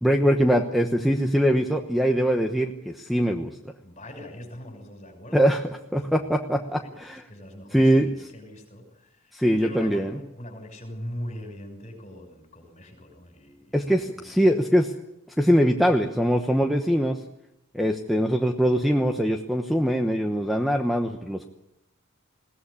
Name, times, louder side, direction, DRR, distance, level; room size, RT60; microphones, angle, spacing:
voice 1, 0.0-3.5 5.3-5.6 5.9-7.2 7.7-8.1 9.3-10.1 13.7-14.9 15.4-17.2 17.7-21.5, equal, ahead, 5 dB, 1.0 m, -22 dB
voice 2, 3.8-5.5 6.0-6.4 6.8-14.4, equal, 30° left, 5 dB, 6.0 m, -41 dB
21.5 x 17.5 x 9.9 m, 0.85 s
head